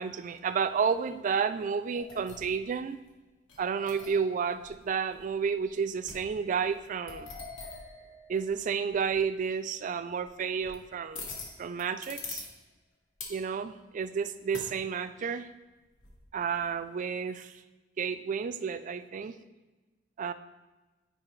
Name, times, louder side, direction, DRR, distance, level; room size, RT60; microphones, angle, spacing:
voice 1, 0.0-3.0 3.6-7.3 8.3-11.3 11.6-12.4 13.3-15.5 16.3-17.6 18.0-19.4 20.2-20.3, right 6 dB, 40° right, 12 dB, 0.3 m, -31 dB
sound 1, 1.9-2.8 3.5-4.3 4.6-4.7 5.1-5.7 6.1-8.6 8.9-9.2 10.2-10.8 11.1-12.5 13.2-13.5 14.5-14.8 16.0-16.7, left 4 dB, 70° left, 1.2 m, -44 dB
9.8 x 4.9 x 3.1 m, 1.2 s
head